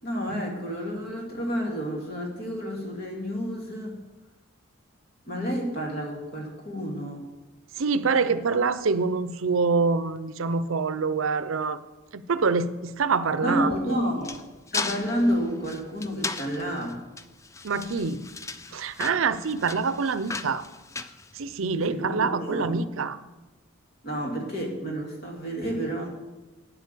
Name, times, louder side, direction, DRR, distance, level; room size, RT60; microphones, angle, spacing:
voice 1, 0.0-4.0 5.3-7.3 13.4-14.4 14.7-17.0 21.7-22.8 24.0-26.1, equal, 45° left, 0 dB, 2.2 m, -30 dB
voice 2, 7.8-11.8 12.1-14.0 17.6-18.2 18.7-20.6 21.3-23.2, right 4 dB, 75° right, 14 dB, 0.6 m, -26 dB
sound 1, 13.6-21.9, left 4 dB, 15° left, 0.3 m, -37 dB
9.1 x 8.2 x 6.7 m, 1.1 s
head